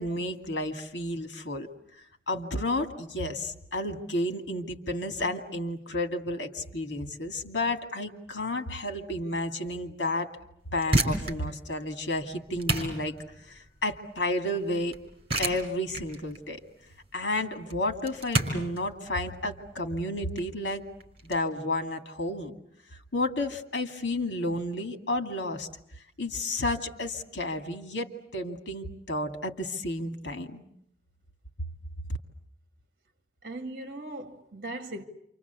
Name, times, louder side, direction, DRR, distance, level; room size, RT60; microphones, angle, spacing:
voice 1, 0.0-1.7 2.3-10.3 10.7-13.1 13.5-15.0 15.4-16.6 17.1-20.8 21.2-22.5 23.1-25.7 26.2-30.6, left 1 dB, 80° left, 2.5 m, -31 dB
sound 1, 10.6-21.4, right 2 dB, 35° right, 4.7 m, -32 dB
voice 2, 33.4-35.0, right 2 dB, 50° right, 2.2 m, -38 dB
28.0 x 25.5 x 8.3 m
head